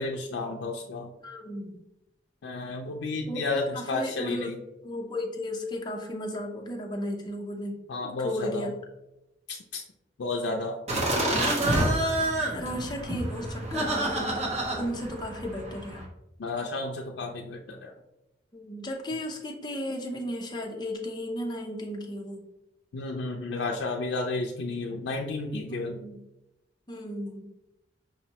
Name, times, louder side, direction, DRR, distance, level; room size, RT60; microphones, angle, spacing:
voice 1, 0.0-1.1 2.4-4.6 7.9-8.7 9.5-9.8 10.2-10.8 16.4-17.9 22.9-26.0, left 3 dB, 90° left, -1 dB, 0.4 m, -32 dB
voice 2, 1.2-1.8 3.3-4.5 4.8-7.8 8.0-8.7 11.6-16.1 18.5-22.4 25.7-26.2 26.9-27.5, equal, 25° left, 0 dB, 0.6 m, -35 dB
sound 1, 10.9-16.0, right 1 dB, 40° right, 0.8 m, -28 dB
5.2 x 2.0 x 2.8 m, 0.91 s
head